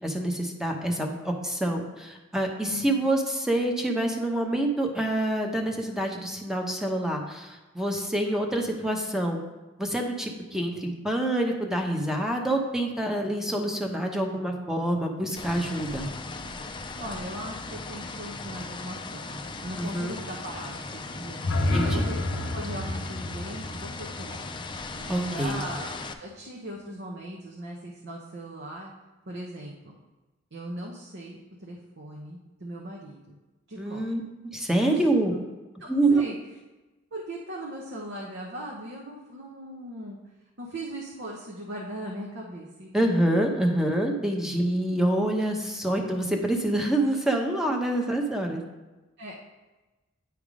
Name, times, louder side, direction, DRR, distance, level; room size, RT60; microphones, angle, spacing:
voice 1, 0.0-9.4 9.8-16.1 19.8-20.1 21.7-22.0 25.1-25.6 33.8-35.3 35.9-36.2 42.9-48.6, right 1 dB, 5° right, 2 dB, 0.8 m, -26 dB
sound 1, 15.4-26.1, left 3 dB, 25° left, 0.4 m, -38 dB
voice 2, 17.0-22.2 22.5-24.5 24.9-25.9 26.2-28.9 29.3-30.0 30.5-33.4 33.7-34.0 34.8-35.1 35.8-36.4 37.1-40.2 40.6-43.4 49.2-49.4, right 1 dB, 60° right, -2 dB, 0.9 m, -39 dB
sound 2, 21.3-25.3, left 1 dB, 80° left, 0.7 m, -30 dB
9.4 x 3.5 x 4.9 m, 1.1 s
head